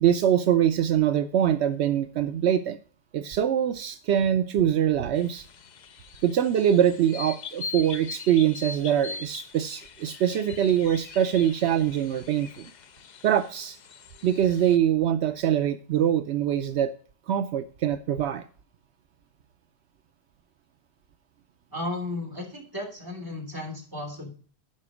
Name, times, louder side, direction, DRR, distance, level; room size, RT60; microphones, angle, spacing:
voice 1, 0.0-2.8 3.1-5.5 6.2-12.7 13.2-13.8 14.2-16.9 17.3-18.4, right 10 dB, 80° right, 10 dB, 0.9 m, -23 dB
sound 1, 5.1-14.8, left 5 dB, 50° left, 0.6 m, -42 dB
voice 2, 21.7-24.3, left 2 dB, 20° right, -1 dB, 2.9 m, -34 dB
12.0 x 5.1 x 4.8 m, 0.43 s
omnidirectional pair, 1.1 m